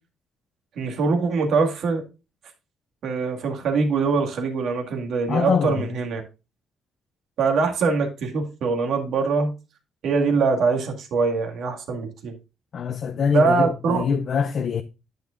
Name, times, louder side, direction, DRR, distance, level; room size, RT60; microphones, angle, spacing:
voice 1, 0.8-2.0 3.0-6.2 7.4-9.5 10.0-12.3 13.3-14.0, right 4 dB, 75° right, 2.0 m, -23 dB
voice 2, 5.3-5.8 12.7-14.8, left 6 dB, 55° left, 0.5 m, -24 dB
10.5 x 7.1 x 2.5 m
cardioid pair, 90°, 0 cm